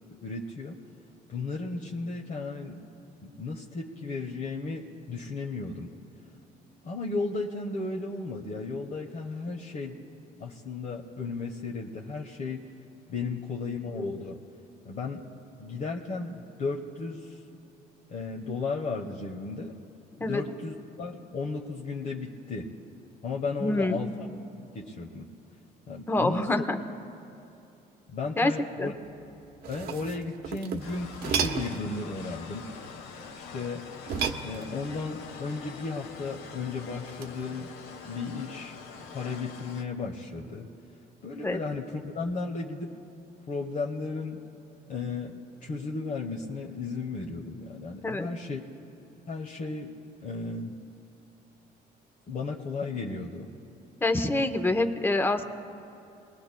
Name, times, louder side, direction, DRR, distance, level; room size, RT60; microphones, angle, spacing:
voice 1, 0.2-0.8 1.3-2.8 3.2-5.9 6.8-10.0 10.4-12.7 13.1-14.4 14.8-15.3 15.6-17.4 18.1-19.7 20.2-22.7 23.2-24.1 24.6-25.3 25.9-26.6 28.1-28.9 29.7-32.7 33.3-33.9 34.4-37.7 38.0-38.8 39.1-40.7 41.2-42.9 43.5-44.4 44.9-48.6 49.3-49.9 50.2-50.8 52.3-53.5, left 3 dB, 50° left, -1 dB, 1.1 m, -34 dB
voice 2, 23.6-24.0 26.1-26.8 28.4-28.5 28.8-28.9 41.4-41.6 48.0-48.3 54.0-55.4, left 2 dB, 15° left, 7 dB, 0.8 m, -26 dB
sound 1, 29.5-31.9 34.0-35.0 37.1-37.4, right 6 dB, 70° right, 1.0 m, -33 dB
sound 2, 30.8-39.8, left 5 dB, 80° left, 1.2 m, -44 dB
25.0 x 20.0 x 2.2 m, 2.8 s
cardioid pair, 110°, 17 cm